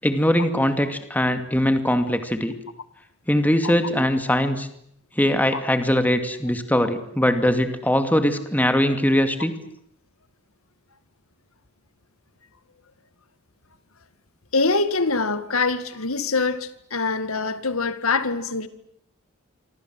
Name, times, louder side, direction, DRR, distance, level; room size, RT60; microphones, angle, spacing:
voice 1, 0.0-2.5 3.3-4.7 5.2-9.6, equal, 10° left, 2.4 m, -21 dB
voice 2, 14.5-18.7, left 3 dB, 80° left, 2.1 m, -24 dB
27.5 x 26.0 x 7.8 m
head